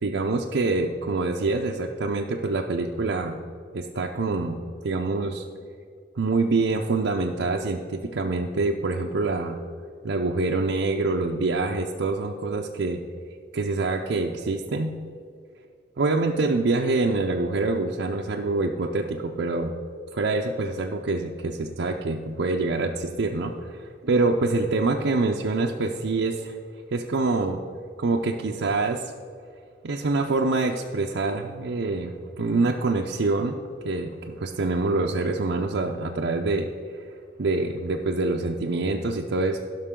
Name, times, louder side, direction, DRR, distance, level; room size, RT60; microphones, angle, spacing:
voice 1, 0.0-3.4 3.7-4.6 4.8-5.5 6.2-9.6 10.0-13.0 13.5-14.9 16.0-19.7 20.1-23.5 24.1-26.6 26.9-27.6 28.0-29.1 29.8-33.6 33.8-36.7 37.4-39.6, right 3 dB, 90° right, 0 dB, 0.6 m, -25 dB
16.0 x 6.0 x 3.7 m, 2.2 s
head